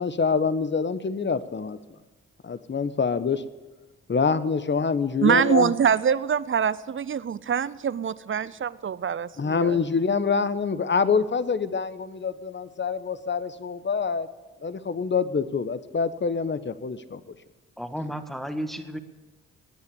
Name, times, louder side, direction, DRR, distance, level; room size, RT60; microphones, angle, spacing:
voice 1, 0.0-1.8 2.4-3.4 4.1-5.7 9.4-14.3 14.6-17.2, left 5 dB, 30° left, 13 dB, 1.2 m, -26 dB
voice 2, 5.2-9.8, right 7 dB, 35° right, 18 dB, 0.7 m, -24 dB
voice 3, 17.8-19.0, equal, ahead, 7 dB, 1.8 m, -33 dB
20.0 x 9.6 x 7.0 m, 1.2 s
hypercardioid pair, 40°, 35 cm